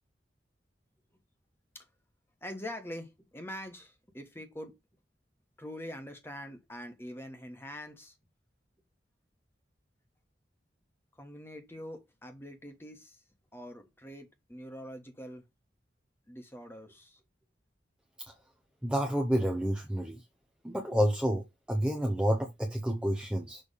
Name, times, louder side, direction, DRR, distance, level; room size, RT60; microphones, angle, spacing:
voice 1, 2.4-4.8 5.6-8.2 11.1-13.2 13.5-15.4 16.3-17.2, equal, 15° left, 1.4 m, -44 dB
voice 2, 18.8-20.2 20.6-23.6, equal, 5° right, 0.8 m, -29 dB
6.6 x 3.4 x 5.1 m
head